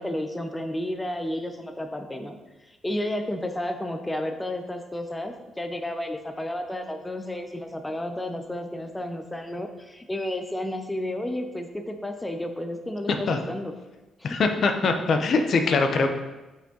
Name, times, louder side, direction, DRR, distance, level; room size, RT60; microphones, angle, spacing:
voice 1, 0.0-2.4 2.7-13.7 14.2-14.4, left 1 dB, 10° left, 6 dB, 0.5 m, -32 dB
voice 2, 14.2-16.1, left 4 dB, 55° left, 5 dB, 0.6 m, -22 dB
5.4 x 4.8 x 3.8 m, 1.1 s
cardioid pair, 90°, 0 cm